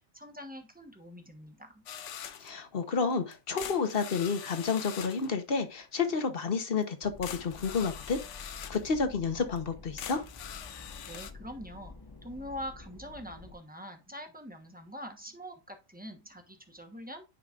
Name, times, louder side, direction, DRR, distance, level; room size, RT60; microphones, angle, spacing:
voice 1, 0.1-1.8 11.1-11.9 12.2-17.2, equal, 5° right, 1.0 m, -44 dB
sound 1, 1.9-2.6 3.3-5.3 6.8-6.9 7.2-8.9 9.6-9.7 10.0-11.3, left 9 dB, 70° left, 1.0 m, -43 dB
voice 2, 2.4-10.2, left 5 dB, 45° left, 1.2 m, -30 dB
sound 2, 7.0-13.5, left 3 dB, 20° left, 0.8 m, -49 dB
10.0 x 5.0 x 2.5 m
omnidirectional pair, 1.4 m